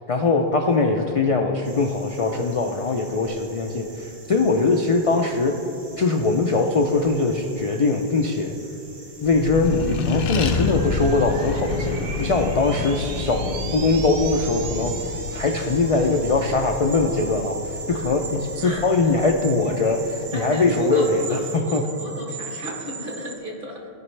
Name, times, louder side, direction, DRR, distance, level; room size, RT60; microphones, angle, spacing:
voice 1, 0.1-5.6 6.0-8.5 9.2-21.8, left 3 dB, 50° left, 2 dB, 0.4 m, -22 dB
sound 1, 1.6-21.6, right 2 dB, 35° right, 0.9 m, -46 dB
Accelerating revving vroom, 9.2-20.2, left 4 dB, 70° left, 0.8 m, -30 dB
sound 2, 10.4-23.4, right 5 dB, 80° right, 1.0 m, -37 dB
voice 2, 18.6-19.1 20.3-23.9, equal, 50° right, -1 dB, 1.5 m, -35 dB
15.5 x 5.3 x 3.2 m, 2.9 s
omnidirectional pair, 1.1 m